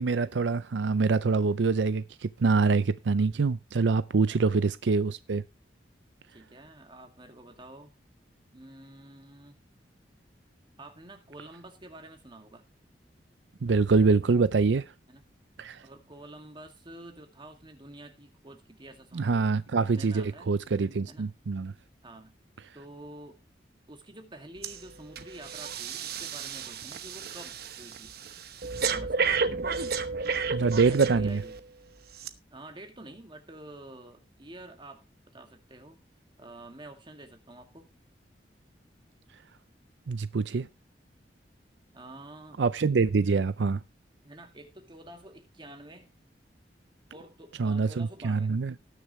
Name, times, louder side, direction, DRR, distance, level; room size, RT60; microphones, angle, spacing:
voice 1, 0.0-5.4 13.6-14.8 15.6-15.8 19.1-21.7 30.5-31.4 40.1-40.7 42.6-43.8 47.6-48.7, right 4 dB, 80° right, 0.5 m, -25 dB
voice 2, 4.3-4.7 6.3-8.0 8.5-9.6 10.8-12.6 15.1-15.2 15.8-19.3 19.8-20.5 21.0-21.3 22.0-22.4 22.7-23.4 23.9-28.2 28.8-29.3 30.9-31.6 32.5-36.0 36.4-37.9 41.9-42.6 44.2-46.1 47.1-48.6, right 1 dB, 30° right, 2.1 m, -48 dB
Breathing, 24.6-24.8 25.2-31.6 32.2-32.3, right 5 dB, 60° right, 1.0 m, -32 dB
19.0 x 6.7 x 3.1 m
head